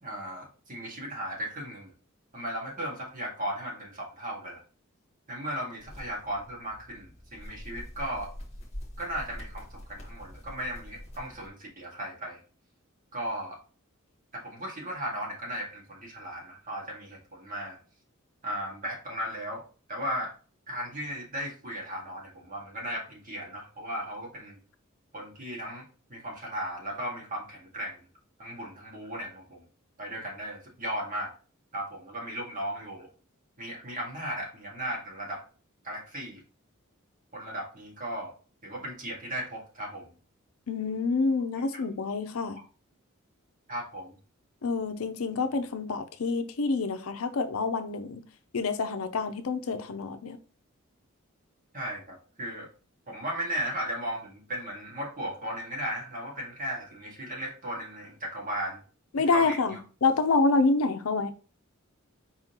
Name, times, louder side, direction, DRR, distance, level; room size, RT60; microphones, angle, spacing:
voice 1, 0.0-1.9 2.3-4.6 5.3-8.3 9.0-12.4 13.1-13.6 14.3-17.8 18.4-19.6 19.9-20.3 20.7-24.6 25.1-28.1 28.4-29.6 30.0-31.3 31.7-33.1 33.6-35.4 35.8-36.4 37.3-38.3 38.6-40.1 41.7-41.8 43.7-44.2 51.7-52.7 53.1-58.8 59.3-59.8, equal, 40° right, 1.8 m, -36 dB
sound 1, 5.8-11.5, equal, 30° left, 1.4 m, -44 dB
voice 2, 40.7-42.6 44.6-48.2 48.5-50.4 59.1-61.3, left 4 dB, 75° left, 0.6 m, -27 dB
4.8 x 3.7 x 2.9 m
head